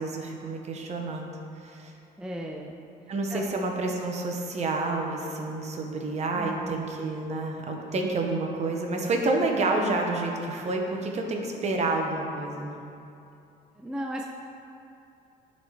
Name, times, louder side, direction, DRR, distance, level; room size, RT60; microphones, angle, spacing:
voice 1, 0.0-1.3 1.6-1.9 3.1-12.8, right 2 dB, 40° right, 1 dB, 0.9 m, -29 dB
voice 2, 2.2-2.8 3.3-3.7 6.3-6.8 13.7-14.2, equal, 5° right, 0 dB, 0.4 m, -36 dB
11.0 x 4.1 x 3.3 m, 2.7 s
cardioid pair, 110°, 17 cm